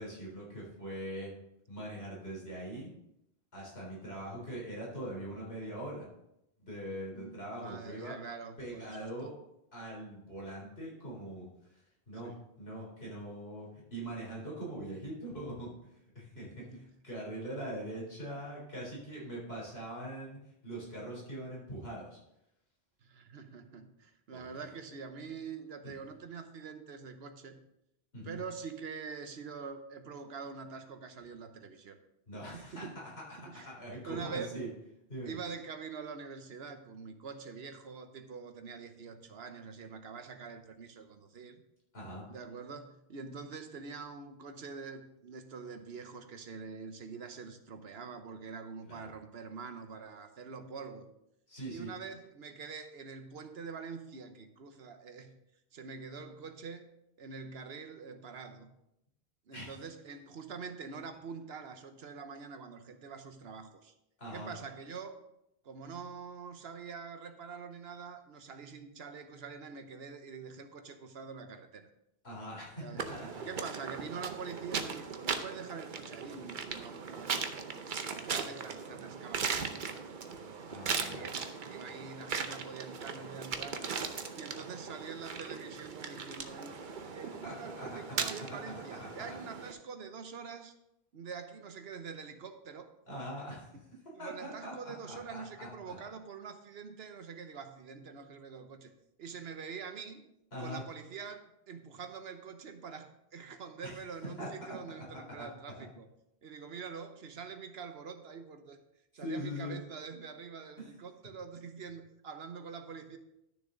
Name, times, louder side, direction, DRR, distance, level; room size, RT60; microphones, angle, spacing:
voice 1, 0.0-1.3 1.7-2.9 3.5-6.1 6.6-8.1 8.6-9.3 9.7-11.5 11.7-15.7 16.1-20.4 20.6-22.2 24.3-24.4 25.8-25.9 28.1-28.4 32.3-33.2 33.6-34.7 35.1-35.4 41.9-42.2 48.9-49.1 51.5-51.9 59.5-59.7 64.2-64.5 72.2-73.3 80.7-81.3 87.2-88.6 89.0-89.4 93.1-93.7 94.2-96.0 100.5-100.8 103.8-103.9 104.4-104.8 105.1-105.5 105.8-105.9 109.2-109.8 110.8-110.9, right 1 dB, 80° left, -4 dB, 4.0 m, -42 dB
voice 2, 7.1-9.3 12.2-12.4 16.3-16.9 23.0-27.6 28.2-32.0 32.5-33.0 33.4-33.8 34.0-34.5 35.2-41.6 42.3-51.1 51.7-55.3 55.7-56.9 57.2-58.8 59.5-63.9 64.3-65.2 65.6-71.9 72.8-73.1 73.4-77.3 77.6-80.1 80.7-83.8 84.3-86.8 87.1-90.7 91.1-92.9 94.1-98.9 99.2-100.2 100.6-106.1 106.4-108.8 109.1-113.2, right 5 dB, 80° right, 7 dB, 1.2 m, -45 dB
sound 1, 73.0-89.7, right 5 dB, 55° right, 0.9 m, -39 dB
12.0 x 6.8 x 3.8 m, 0.82 s
omnidirectional pair, 1.0 m